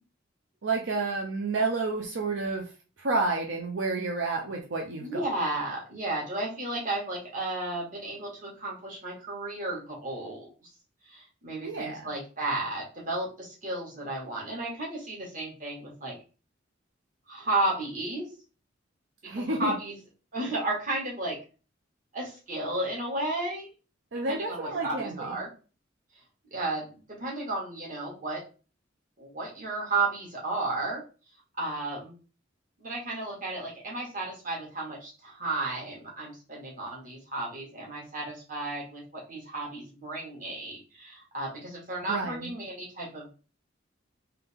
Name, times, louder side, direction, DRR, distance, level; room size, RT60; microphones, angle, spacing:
voice 1, 0.6-2.7 3.0-5.3 11.6-12.1 19.2-19.7 24.1-25.3 42.1-42.5, right 3 dB, 75° right, 1 dB, 0.7 m, -30 dB
voice 2, 5.0-10.5 11.1-16.2 17.3-18.3 19.3-20.0 20.3-21.4 22.1-23.7 24.3-25.5 26.5-28.4 29.2-31.0 31.6-32.1 32.8-43.4, right 2 dB, 45° right, -3 dB, 1.7 m, -33 dB
3.9 x 2.8 x 3.5 m, 0.35 s
head